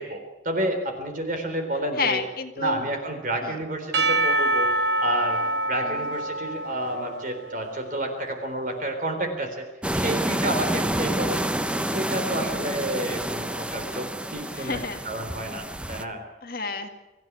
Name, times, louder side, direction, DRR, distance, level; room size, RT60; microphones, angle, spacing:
voice 1, 0.0-2.2 2.6-4.7 5.0-9.7 9.9-11.4 11.9-14.8 15.0-16.2, right 1 dB, 50° right, 5 dB, 3.8 m, -30 dB
voice 2, 2.0-2.8 3.4-3.5 5.8-6.0 14.5-15.0 16.4-16.9, left 4 dB, 55° left, 5 dB, 2.0 m, -30 dB
Percussion / Church bell, 3.9-8.1, right 2 dB, 75° right, 1.5 m, -26 dB
sound 1, 9.8-16.0, right 1 dB, 5° right, 0.8 m, -28 dB
24.0 x 15.0 x 9.3 m, 1.1 s
head